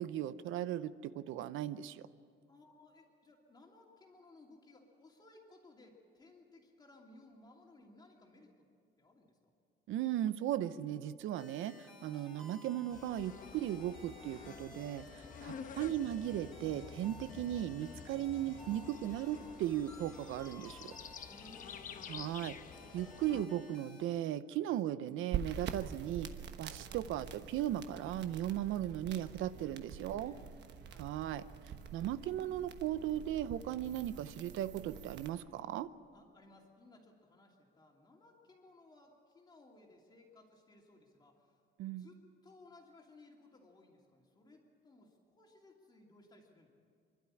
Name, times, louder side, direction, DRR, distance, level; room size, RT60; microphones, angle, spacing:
voice 1, 0.0-2.1 9.9-11.7 12.0-20.9 22.1-22.6 22.9-26.3 26.6-30.3 31.0-31.4 31.9-35.9 41.8-42.1, right 12 dB, 85° right, 14 dB, 0.7 m, -37 dB
voice 2, 2.5-8.7 9.0-9.4 18.4-19.6 21.3-22.7 26.8-27.6 29.6-30.5 30.9-31.1 36.1-41.6 41.9-46.7, left 2 dB, 20° left, 0 dB, 2.8 m, -61 dB
sound 1, 11.3-24.0, left 1 dB, 5° left, 3.1 m, -57 dB
sound 2, 12.9-23.5, left 7 dB, 40° left, 1.0 m, -50 dB
sound 3, 25.3-35.3, right 8 dB, 60° right, 1.2 m, -46 dB
26.0 x 12.0 x 10.0 m, 2.3 s
cardioid pair, 170°, 20 cm